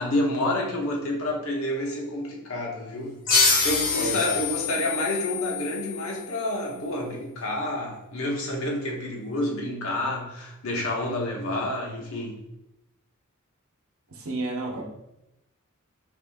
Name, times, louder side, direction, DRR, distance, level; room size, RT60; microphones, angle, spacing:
voice 1, 0.0-3.2 3.6-12.4, left 1 dB, 70° left, -2 dB, 1.1 m, -29 dB
sound 1, 3.3-6.5, left 4 dB, 40° left, 1.0 m, -26 dB
voice 2, 14.1-14.8, right 2 dB, 85° right, 1 dB, 0.9 m, -31 dB
4.9 x 2.6 x 3.6 m, 0.87 s
head